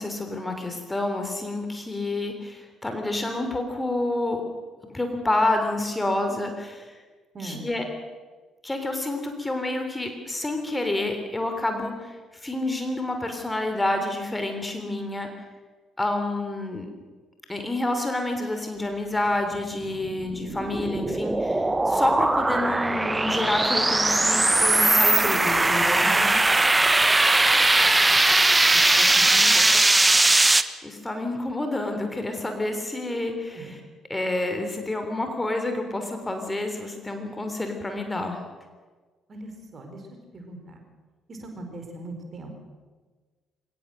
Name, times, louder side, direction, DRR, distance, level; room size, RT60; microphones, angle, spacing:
voice 1, 0.0-4.4 4.9-6.9 7.4-7.8 8.6-15.3 16.0-16.9 17.5-26.0 30.4-33.7 34.1-38.4, left 2 dB, 15° left, 5 dB, 3.4 m, -28 dB
voice 2, 7.3-7.7 25.9-26.4 27.8-28.3 28.7-29.8 33.5-33.7 39.3-40.1 40.3-40.8 41.3-42.5, right 2 dB, 40° right, 4 dB, 4.8 m, -40 dB
sound 1, 20.0-30.6, right 2 dB, 15° right, 1.1 m, -20 dB
22.0 x 19.0 x 6.6 m, 1.4 s
figure-of-eight pair, 45°, 0 cm